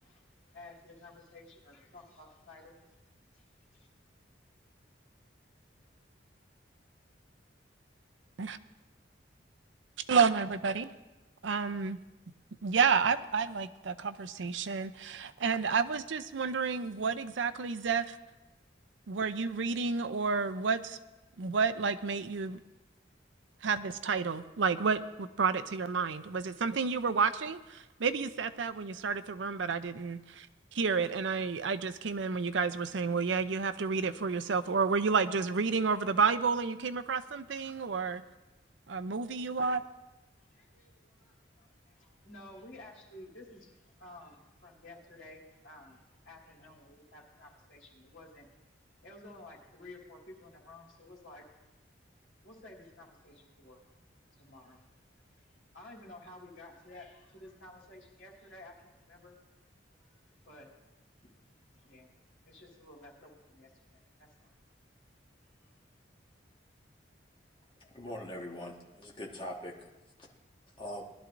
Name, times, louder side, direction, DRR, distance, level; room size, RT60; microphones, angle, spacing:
voice 1, 0.0-2.8 3.1-3.4 3.7-3.9 40.4-48.5 49.0-51.7 52.4-53.8 54.3-54.9 55.2-55.5 55.7-59.4 60.0-60.7 61.2-61.3 61.6-62.1 62.4-64.5 65.6-65.7, left 2 dB, 80° left, -3 dB, 3.0 m, -53 dB
voice 2, 10.1-10.9 11.4-12.0 12.6-18.2 19.1-21.0 21.4-22.6 23.6-30.5 30.7-38.2 38.9-39.8, right 5 dB, 80° right, 12 dB, 0.5 m, -30 dB
voice 3, 67.9-69.7 70.2-70.3 70.8-71.0, left 1 dB, 25° left, -2 dB, 1.6 m, -41 dB
20.0 x 12.0 x 2.6 m, 1.1 s
head